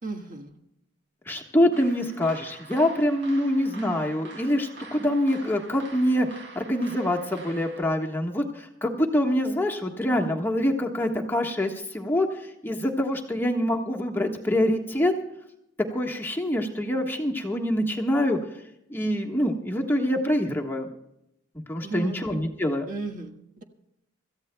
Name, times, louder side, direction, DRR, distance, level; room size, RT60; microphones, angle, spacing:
voice 1, 0.0-0.5 21.8-22.2 22.9-23.6, right 3 dB, 45° right, 3 dB, 1.6 m, -35 dB
voice 2, 1.3-6.3 6.5-15.1 15.9-18.4 18.9-20.9 21.7-22.9, left 1 dB, 10° left, 0 dB, 1.4 m, -25 dB
sound 1, 1.7-7.8, right 3 dB, 65° right, 2.7 m, -46 dB
26.5 x 14.5 x 2.3 m, 0.82 s
head